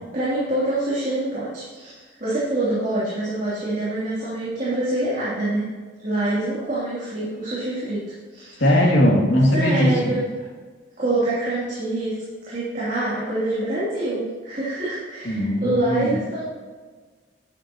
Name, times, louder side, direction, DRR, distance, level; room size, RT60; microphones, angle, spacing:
voice 1, 0.1-5.7 6.0-8.0 8.3-8.9 9.5-10.2 11.0-12.2 12.5-16.4, right 2 dB, 40° right, -9 dB, 2.8 m, -25 dB
voice 2, 8.6-10.2 15.2-16.2, left 1 dB, 75° left, -2 dB, 2.4 m, -19 dB
11.0 x 9.5 x 2.9 m, 1.4 s
head